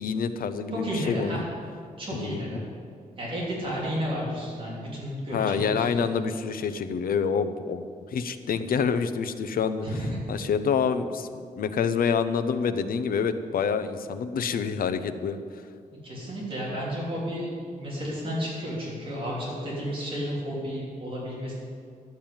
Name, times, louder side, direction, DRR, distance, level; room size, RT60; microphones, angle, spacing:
voice 1, 0.0-1.4 2.1-2.7 5.3-7.8 8.1-9.9 10.3-11.3 11.6-15.4, left 6 dB, 85° left, 10 dB, 0.8 m, -27 dB
voice 2, 0.7-1.5 2.0-2.6 3.2-6.1 9.8-10.2 16.0-21.5, equal, 35° right, -6 dB, 3.4 m, -32 dB
12.0 x 7.6 x 8.8 m, 2.2 s
wide cardioid pair, 175°, 15 cm